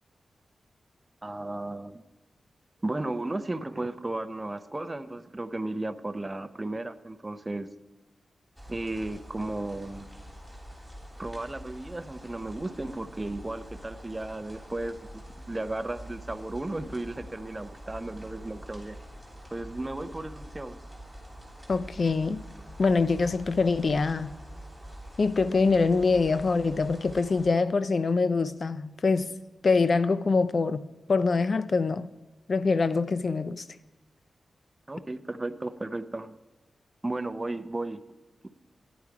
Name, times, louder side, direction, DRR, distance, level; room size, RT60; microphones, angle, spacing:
voice 1, 1.2-2.0 2.8-7.7 8.7-10.1 11.2-19.0 19.5-20.8 34.9-36.4 37.0-38.0 38.4-38.5, right 2 dB, 20° right, 0.6 m, -34 dB
sound 1, 8.6-27.5, equal, 5° left, 3.2 m, -46 dB
voice 2, 21.7-22.4 22.8-24.3 25.2-29.3 29.6-30.8 31.1-32.1 32.5-33.6, left 4 dB, 50° left, 0.5 m, -24 dB
13.5 x 10.5 x 4.8 m
wide cardioid pair, 110°, 0 cm